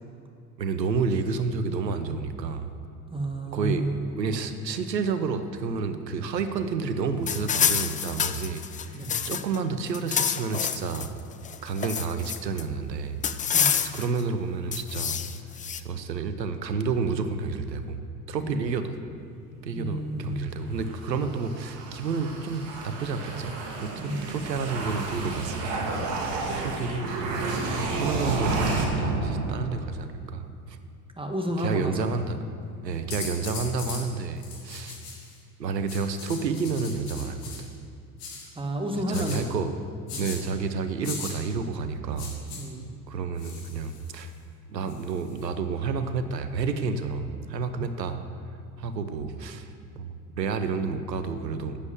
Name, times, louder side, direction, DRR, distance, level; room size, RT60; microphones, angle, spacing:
voice 1, 0.6-2.7 3.5-3.9 4.1-11.1 11.6-13.2 13.8-15.2 15.8-18.0 18.3-18.9 19.6-25.9 26.2-26.3 26.6-27.5 27.9-30.8 31.6-32.4 32.8-35.0 35.6-37.5 39.1-39.7 40.1-42.3 43.1-44.3 44.7-48.2 48.8-49.7 50.0-51.8, right 5 dB, 85° right, 10 dB, 0.9 m, -30 dB
voice 2, 3.1-4.2 8.9-9.2 13.5-13.8 18.4-18.6 19.8-20.6 24.0-24.4 31.2-32.1 38.6-39.5 40.1-40.3 42.5-42.9 47.8-48.1, right 1 dB, 10° right, 3 dB, 1.8 m, -31 dB
sound 1, 7.3-9.6 9.9-11.1 11.5-12.6 13.2-14.2 14.7-15.8, left 8 dB, 15° left, 0.4 m, -27 dB
sound 2, 20.8-30.1, right 3 dB, 55° right, 2.1 m, -31 dB
sound 3, 33.1-34.0 34.4-35.4 35.9-37.6 38.2-38.4 39.1-39.4 40.1-40.4 41.0-41.3 42.2-42.6 43.4-44.3 44.9-45.4, left 5 dB, 70° left, 3.1 m, -39 dB
11.5 x 8.4 x 7.2 m, 2.5 s
figure-of-eight pair, 70°, 49 cm